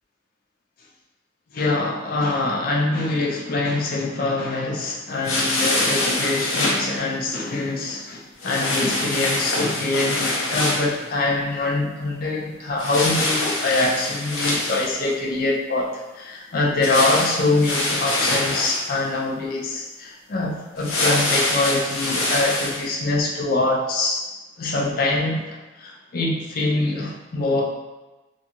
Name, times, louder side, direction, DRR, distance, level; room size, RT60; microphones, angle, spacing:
voice 1, 1.5-24.2 24.6-27.6, left 2 dB, 45° left, -2 dB, 0.4 m, -24 dB
sound 1, 5.2-6.8 8.4-10.9 12.8-15.1 16.8-18.8 20.8-22.8, left 1 dB, 90° left, 0.6 m, -24 dB
2.6 x 2.4 x 2.9 m, 1.1 s
head